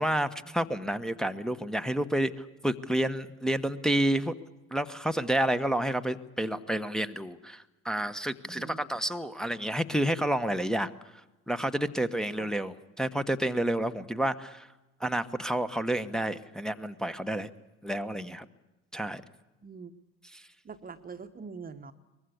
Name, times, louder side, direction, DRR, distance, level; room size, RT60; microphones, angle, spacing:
voice 1, 0.0-4.3 4.7-10.9 11.5-14.7 15.0-17.5 17.8-18.4 18.9-19.2 20.3-20.4, right 1 dB, ahead, 7 dB, 1.1 m, -30 dB
voice 2, 8.4-8.8 12.4-12.5 19.6-19.9 20.6-21.9, right 5 dB, 20° right, 9 dB, 1.2 m, -43 dB
23.5 x 21.0 x 8.4 m, 1.1 s
figure-of-eight pair, 65°, 40 cm